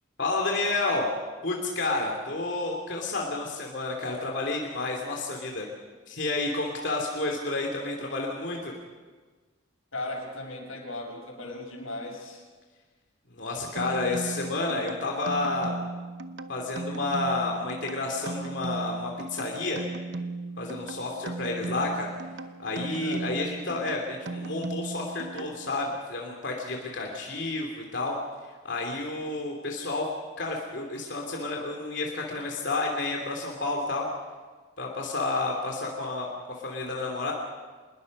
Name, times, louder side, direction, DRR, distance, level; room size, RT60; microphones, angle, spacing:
voice 1, 0.2-1.1 1.4-5.7 6.1-8.7 13.3-15.8 16.5-19.8 20.6-22.1 22.6-28.2 28.6-30.1 30.4-34.1 34.8-36.3 36.6-37.3, left 2 dB, 60° left, 0 dB, 2.9 m, -30 dB
voice 2, 9.9-12.4 23.0-23.3, left 2 dB, 85° left, 0 dB, 6.7 m, -37 dB
sound 1, 13.8-25.9, right 3 dB, 55° right, 0.9 m, -37 dB
26.5 x 21.0 x 5.4 m, 1.4 s
head